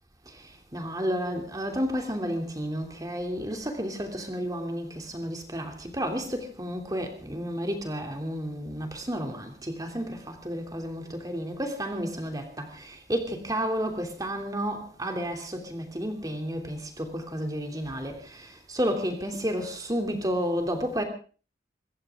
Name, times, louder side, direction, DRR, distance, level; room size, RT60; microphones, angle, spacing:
voice 1, 0.3-21.0, equal, 20° right, 3.0 m, -31 dB
25.5 x 14.0 x 3.7 m
head